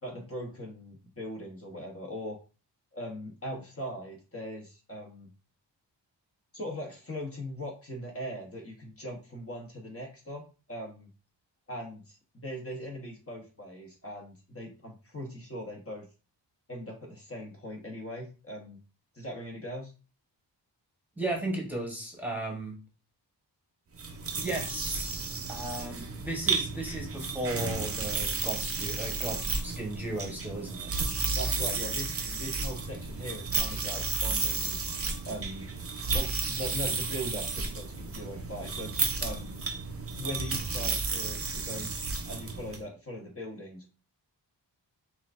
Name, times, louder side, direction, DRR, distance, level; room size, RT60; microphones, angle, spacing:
voice 1, 0.0-2.4 2.9-5.3 6.5-11.1 11.7-16.1 16.7-18.8 19.1-19.9 31.3-34.8 35.3-35.7 36.1-39.6 40.2-41.9 42.3-43.9, equal, 35° left, 0 dB, 1.0 m, -40 dB
voice 2, 21.2-22.8 24.3-25.2 25.5-30.9, right 1 dB, 5° right, -1 dB, 1.0 m, -35 dB
sound 1, 23.9-42.8, right 4 dB, 35° right, 0.6 m, -32 dB
5.8 x 2.4 x 2.5 m, 0.32 s
wide cardioid pair, 125°, 43 cm